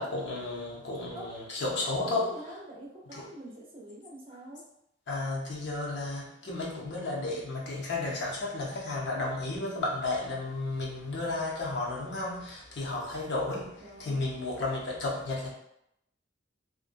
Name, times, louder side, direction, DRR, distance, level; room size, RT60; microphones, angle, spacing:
voice 1, 0.0-2.3 3.1-3.3 5.1-15.5, left 2 dB, 60° left, -3 dB, 0.7 m, -33 dB
voice 2, 2.0-4.6 13.8-14.3, right 1 dB, 30° right, -3 dB, 0.6 m, -45 dB
2.5 x 2.1 x 2.5 m, 0.77 s
head